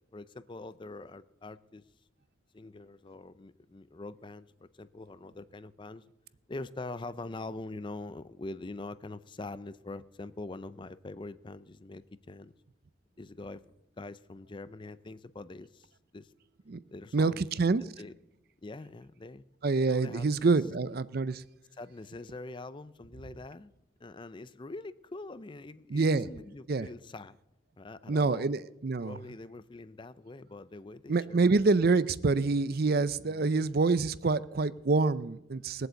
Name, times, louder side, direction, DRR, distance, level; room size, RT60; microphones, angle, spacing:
voice 1, 0.0-1.9 2.5-6.0 6.5-12.5 13.2-13.6 14.0-16.3 16.9-18.1 18.6-19.4 19.8-20.6 21.8-23.7 24.0-27.4 27.8-28.5 29.0-31.5 33.2-33.8, left 2 dB, 25° left, 15 dB, 0.4 m, -44 dB
voice 2, 17.1-17.8 19.6-21.4 25.9-26.3 26.7-26.9 28.1-29.2 31.1-35.9, right 3 dB, 50° right, 17 dB, 0.5 m, -26 dB
20.5 x 8.0 x 8.1 m, 0.89 s
head